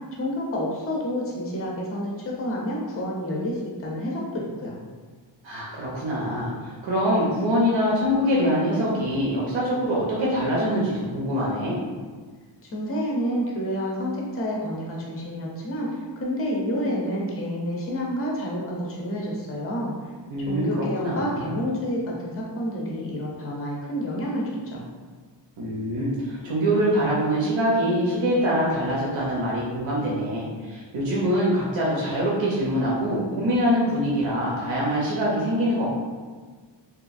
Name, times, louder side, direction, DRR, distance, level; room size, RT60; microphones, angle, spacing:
voice 1, 0.1-4.8 12.6-19.9 20.5-24.8, equal, 30° left, -3 dB, 0.4 m, -29 dB
voice 2, 5.4-11.8 20.3-21.5 25.6-35.9, equal, 75° right, -6 dB, 0.7 m, -24 dB
2.9 x 2.3 x 2.4 m, 1.5 s
wide cardioid pair, 175°, 46 cm